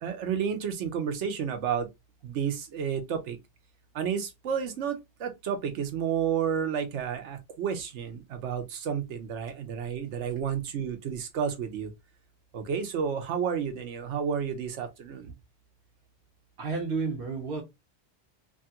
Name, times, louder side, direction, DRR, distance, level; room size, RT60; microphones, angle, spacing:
voice 1, 0.0-1.9 2.2-3.4 3.9-11.9 12.5-15.3, right 7 dB, 85° right, 1.1 m, -31 dB
voice 2, 16.6-17.6, right 4 dB, 60° right, 0.9 m, -31 dB
3.1 x 2.3 x 2.8 m
omnidirectional pair, 1.2 m